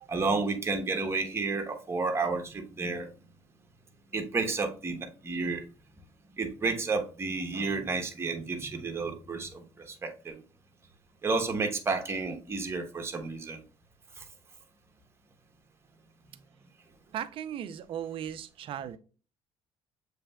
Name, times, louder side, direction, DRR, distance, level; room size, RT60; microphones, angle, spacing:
voice 1, 0.1-3.1 4.1-5.6 6.4-10.4 11.2-13.6 14.2-14.3, right 4 dB, 25° right, 1.0 m, -31 dB
voice 2, 17.1-19.0, right 10 dB, 55° right, 0.5 m, -37 dB
7.0 x 3.3 x 2.3 m
cardioid pair, 110°, 11 cm